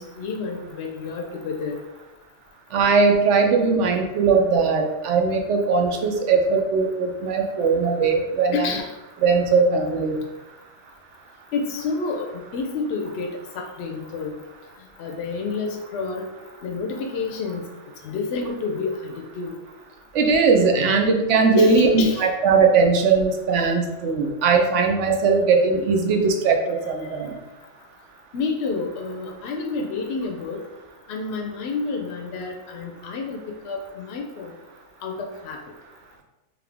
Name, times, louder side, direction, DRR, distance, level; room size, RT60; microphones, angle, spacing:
voice 1, 0.0-1.8 7.6-7.7 8.5-8.9 11.5-14.3 15.0-16.3 16.6-17.7 18.0-19.6 21.5-22.3 28.3-30.6 31.1-34.6 35.0-35.6, left 4 dB, 65° left, 2 dB, 0.8 m, -29 dB
voice 2, 2.7-8.7 9.2-10.2 20.1-27.3, right 4 dB, 75° right, 2 dB, 1.0 m, -19 dB
3.8 x 3.0 x 3.4 m, 1.0 s
omnidirectional pair, 1.2 m